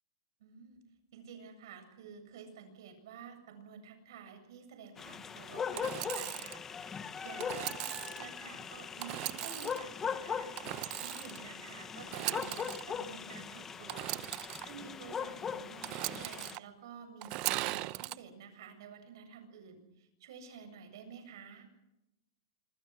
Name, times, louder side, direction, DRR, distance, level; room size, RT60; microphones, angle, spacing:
voice 1, 0.4-0.8 1.1-10.5 11.0-14.1 14.6-21.7, right 6 dB, 65° right, 7 dB, 7.6 m, -51 dB
sound 1, 5.0-16.6, left 6 dB, 15° left, 1.1 m, -40 dB
Engine / Sawing, 5.7-6.6 7.4-8.2 9.0-9.8 10.6-11.4 12.0-12.8 13.9-14.6 15.8-16.6 17.2-18.2, right 19 dB, 35° right, 0.8 m, -38 dB
26.5 x 25.0 x 6.3 m, 0.92 s
supercardioid pair, 160°, 2 cm